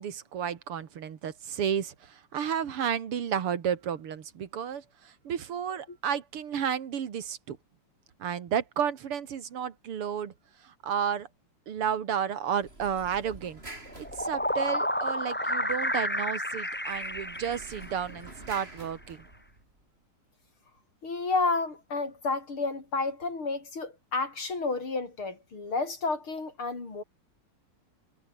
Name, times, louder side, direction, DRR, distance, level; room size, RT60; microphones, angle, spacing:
voice 1, 0.0-7.6 8.2-10.3 10.6-11.3 11.7-13.6 14.0-19.2, right 8 dB, 80° right, 2.7 m, -32 dB
sound 1, 12.5-15.0 16.7-19.8, right 2 dB, 25° right, 5.5 m, -48 dB
sound 2, 13.9-18.3, equal, 5° left, 2.9 m, -31 dB
voice 2, 21.0-27.0, left 3 dB, 70° left, 6.0 m, -31 dB
omnidirectional pair, 2.4 m